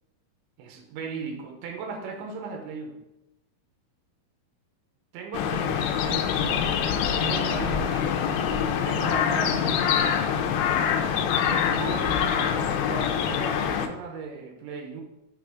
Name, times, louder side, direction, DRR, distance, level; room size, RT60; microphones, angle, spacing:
voice 1, 0.6-3.0 5.1-8.2 8.8-10.2 11.5-15.0, right 5 dB, 80° right, 3 dB, 3.0 m, -37 dB
sound 1, 5.3-13.9, left 8 dB, 85° left, 2.7 m, -25 dB
8.3 x 3.8 x 4.8 m, 0.91 s
omnidirectional pair, 5.6 m